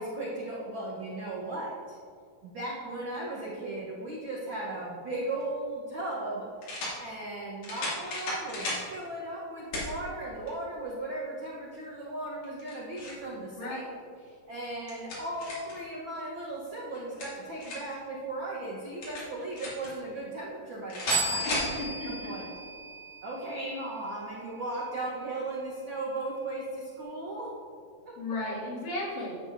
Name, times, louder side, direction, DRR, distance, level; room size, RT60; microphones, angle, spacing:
voice 1, 0.0-2.0 2.4-13.9 14.2-22.5 23.2-27.5 28.0-28.1, right 2 dB, 70° right, -5 dB, 1.1 m, -37 dB
sound 1, 5.4-5.5 6.6-7.0 7.6-8.8 9.7-9.9 10.5-10.6 12.4-13.2 14.6-15.8 16.9-18.0 19.0-19.9 20.9-21.7, left 2 dB, 60° left, 3.7 m, -34 dB
sound 2, 21.1-23.6, right 3 dB, 90° right, 3.0 m, -34 dB
voice 2, 21.8-22.3 28.2-29.4, left 2 dB, 75° left, -7 dB, 3.8 m, -35 dB
10.5 x 8.2 x 2.6 m, 2.3 s
omnidirectional pair, 3.9 m